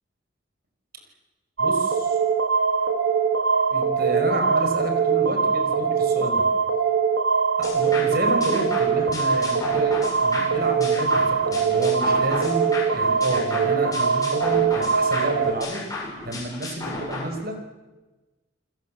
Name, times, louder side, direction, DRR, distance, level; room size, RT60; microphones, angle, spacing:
voice 1, 1.6-2.2 3.7-6.4 7.6-15.8 16.2-17.6, right 1 dB, 55° right, 5 dB, 5.2 m, -30 dB
sound 1, 1.6-15.5, right 5 dB, 85° right, 2.2 m, -22 dB
sound 2, 7.6-17.2, left 3 dB, 20° left, 7.3 m, -34 dB
29.5 x 21.0 x 7.7 m, 1.2 s
head